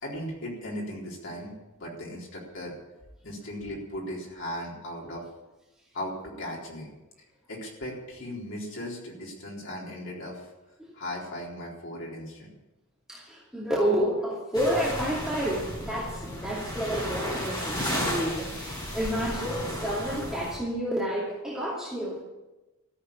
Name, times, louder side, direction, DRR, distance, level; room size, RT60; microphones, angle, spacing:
voice 1, 0.0-2.8 3.2-5.2 5.9-6.9 7.5-10.5 10.9-12.5, equal, 55° left, -3 dB, 4.0 m, -37 dB
voice 2, 13.1-22.2, equal, 5° right, -7 dB, 2.5 m, -30 dB
sound 1, 14.5-20.6, equal, 20° left, 5.5 m, -33 dB
14.0 x 7.9 x 9.8 m, 1.0 s
head